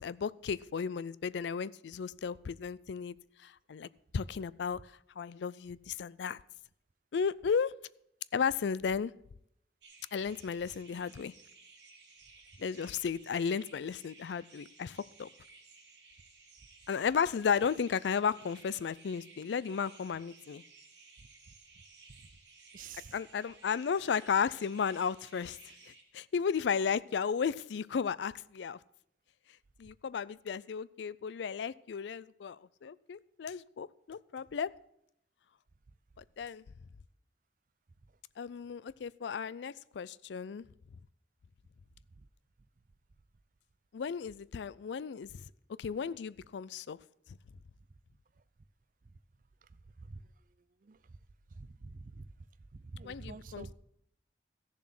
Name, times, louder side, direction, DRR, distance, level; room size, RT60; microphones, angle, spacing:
voice 1, 0.0-3.1 3.4-4.8 5.2-6.4 7.1-7.7 8.3-9.1 10.1-11.3 12.6-15.3 16.9-20.6 23.1-25.6 26.1-28.8 29.8-34.7 36.4-36.6 38.4-40.6 43.9-45.4 45.8-47.0 53.0-53.7, left 6 dB, 75° left, 20 dB, 0.4 m, -34 dB
sound 1, 9.8-26.0, right 4 dB, 80° right, 3.1 m, -58 dB
voice 2, 22.7-23.1 50.1-50.2 50.8-51.0 51.6-52.3 52.7-53.7, right 4 dB, 45° right, 16 dB, 0.5 m, -47 dB
14.0 x 7.2 x 5.9 m, 0.74 s
head